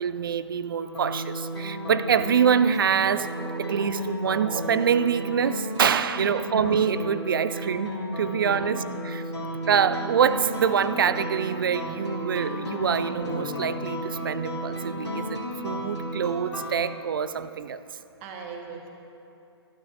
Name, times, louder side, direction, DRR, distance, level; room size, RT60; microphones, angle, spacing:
voice 1, 0.0-9.2 9.7-17.8, right 7 dB, 50° right, 14 dB, 0.5 m, -25 dB
sound 1, 0.8-16.8, equal, 90° left, 2.9 m, -33 dB
voice 2, 6.1-6.5 8.5-8.9 18.2-18.9, right 5 dB, 30° right, 2 dB, 1.7 m, -41 dB
25.5 x 12.5 x 2.9 m, 2.8 s
figure-of-eight pair, 125°, 14 cm